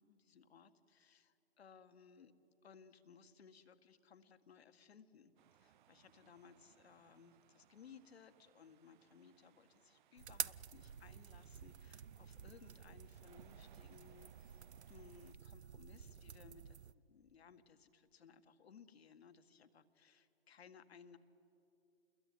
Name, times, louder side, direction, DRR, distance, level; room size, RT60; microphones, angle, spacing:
voice 1, 0.0-2.3 2.6-14.6 14.9-21.2, left 6 dB, 70° left, 9 dB, 1.8 m, -62 dB
sound 1, 5.4-15.3, right 11 dB, 45° right, 0.6 m, -68 dB
sound 2, 10.2-16.9, right 8 dB, 85° right, 0.7 m, -50 dB
28.0 x 21.5 x 9.6 m, 2.8 s
hypercardioid pair, 135°, 32 cm